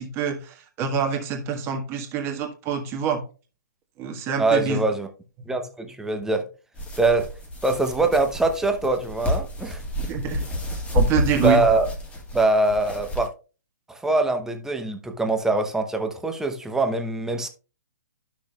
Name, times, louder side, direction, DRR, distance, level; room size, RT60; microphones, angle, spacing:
voice 1, 0.0-3.2 4.0-4.8 5.4-5.5 10.1-10.4 10.9-11.6, right 6 dB, 25° right, 1.5 m, -26 dB
voice 2, 4.4-5.1 5.5-6.5 7.0-7.3 7.6-9.8 11.4-11.9 12.3-13.3 13.9-17.5, right 2 dB, 5° right, 0.8 m, -23 dB
sound 1, 6.8-13.3, equal, 15° left, 1.6 m, -29 dB
11.5 x 6.1 x 2.3 m
figure-of-eight pair, 130°, 10 cm